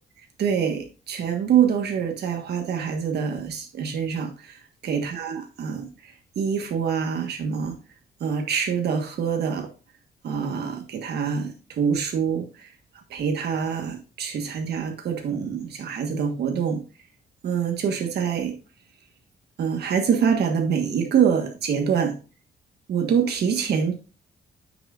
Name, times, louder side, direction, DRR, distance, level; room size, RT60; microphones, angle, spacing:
voice 1, 0.4-4.5 4.8-7.7 8.2-9.7 10.2-12.7 13.1-16.8 17.4-18.5 19.6-22.2 22.9-23.9, right 7 dB, 70° right, 1.4 m, -25 dB
8.9 x 6.3 x 2.4 m
cardioid pair, 120°, 17 cm